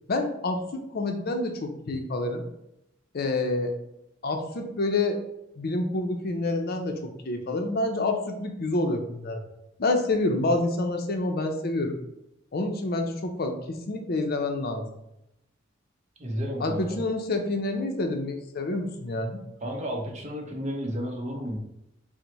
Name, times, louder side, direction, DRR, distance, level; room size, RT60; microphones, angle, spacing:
voice 1, 0.1-2.5 3.1-3.7 4.2-5.2 5.6-9.5 9.8-12.0 12.5-14.9 16.6-19.4, left 2 dB, 50° left, 5 dB, 0.5 m, -28 dB
voice 2, 16.2-17.0 19.6-21.6, equal, 35° right, 1 dB, 0.7 m, -32 dB
6.0 x 2.1 x 3.0 m, 0.84 s
head